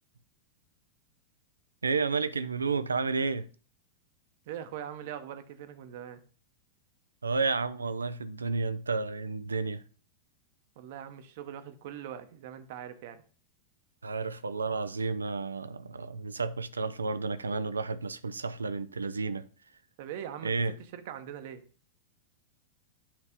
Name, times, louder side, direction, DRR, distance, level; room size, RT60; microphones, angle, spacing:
voice 1, 1.8-3.5 7.2-9.8 14.0-19.4 20.4-20.7, right 4 dB, 80° right, 0.4 m, -31 dB
voice 2, 4.5-6.2 10.8-13.2 20.0-20.6 20.9-21.6, right 10 dB, 55° right, 0.9 m, -41 dB
8.7 x 3.2 x 5.1 m
figure-of-eight pair, 95°, 0 cm